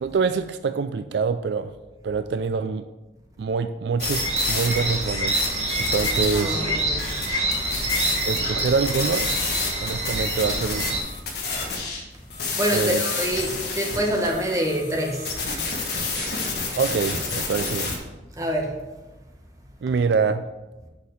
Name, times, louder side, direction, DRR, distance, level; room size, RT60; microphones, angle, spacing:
voice 1, 0.0-1.7 2.0-2.9 3.4-6.7 8.3-9.3 9.8-11.1 12.7-13.0 16.8-17.9 19.8-20.4, right 5 dB, 70° right, 10 dB, 0.4 m, -25 dB
sound 1, 4.0-12.0 12.3-18.0, left 4 dB, 60° left, 1.7 m, -30 dB
sound 2, 4.0-11.0, right 1 dB, 35° right, 1.6 m, -26 dB
voice 2, 6.3-7.1 12.5-15.4 18.4-18.8, equal, 20° right, 0 dB, 1.2 m, -26 dB
6.6 x 5.5 x 6.4 m, 1.1 s
head